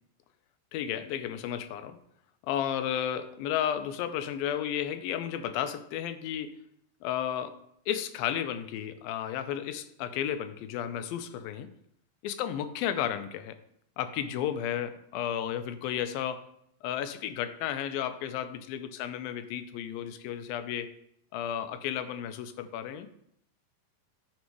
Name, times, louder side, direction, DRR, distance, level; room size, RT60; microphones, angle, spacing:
voice 1, 0.7-2.0 2.4-6.5 7.0-7.6 7.9-11.7 12.2-13.6 14.0-16.5 16.8-20.9 21.3-23.1, left 10 dB, 85° left, 10 dB, 2.4 m, -33 dB
11.5 x 4.1 x 4.7 m, 0.72 s
omnidirectional pair, 4.1 m